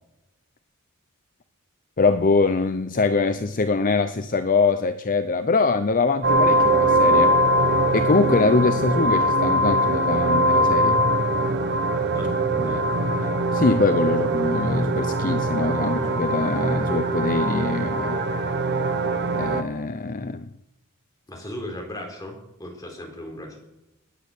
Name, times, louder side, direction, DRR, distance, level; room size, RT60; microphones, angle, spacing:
voice 1, 2.0-7.3 7.9-11.0 12.6-12.8 13.1-18.2 19.3-20.5, left 3 dB, 40° left, 10 dB, 0.6 m, -23 dB
sound 1, 6.2-19.6, right 1 dB, 50° right, 1.3 m, -22 dB
voice 2, 12.6-13.2 21.3-23.6, left 1 dB, 15° left, 1 dB, 4.1 m, -37 dB
20.0 x 9.5 x 6.7 m, 0.95 s
head